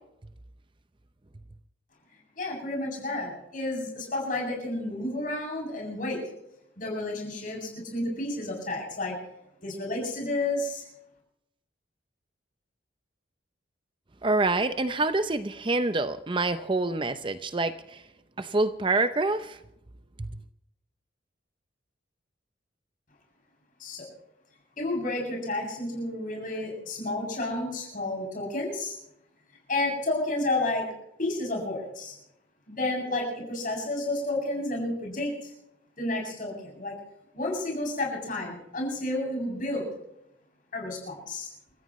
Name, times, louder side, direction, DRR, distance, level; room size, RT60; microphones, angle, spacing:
voice 1, 2.4-6.2 6.8-9.2 9.6-10.9 23.8-24.0 24.8-28.9 29.7-30.9 31.2-32.1 32.7-35.5 36.0-36.9 37.3-39.9 40.7-41.5, left 2 dB, 45° left, 7.6 m, -31 dB
voice 2, 14.2-18.0 18.4-19.6 20.2-20.3, right 2 dB, 25° right, 0.6 m, -26 dB
30.0 x 14.5 x 3.1 m
head